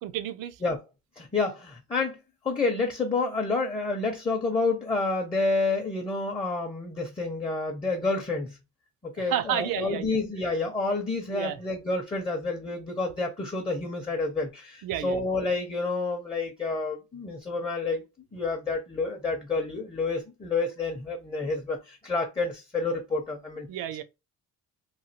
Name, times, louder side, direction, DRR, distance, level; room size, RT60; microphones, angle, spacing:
voice 1, 0.0-0.6 9.2-10.2 11.3-11.6 14.8-15.2 23.7-24.0, right 11 dB, 90° right, 0.5 m, -31 dB
voice 2, 1.2-8.6 9.0-18.0 18.3-23.7, left 3 dB, 15° left, 0.5 m, -29 dB
3.0 x 2.3 x 2.7 m
cardioid pair, 155°, 33 cm